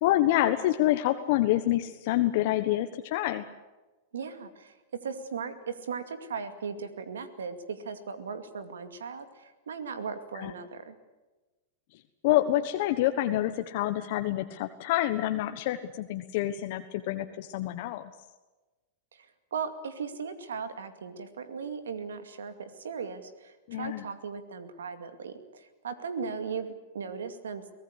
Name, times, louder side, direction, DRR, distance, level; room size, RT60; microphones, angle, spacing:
voice 1, 0.0-3.4 10.4-10.5 12.2-18.1 23.7-24.0, left 14 dB, 60° left, 7 dB, 1.2 m, -27 dB
voice 2, 4.1-11.0 19.1-27.6, right 5 dB, 90° right, 9 dB, 2.3 m, -38 dB
23.5 x 18.0 x 8.3 m, 1.2 s
hypercardioid pair, 115°, 0 cm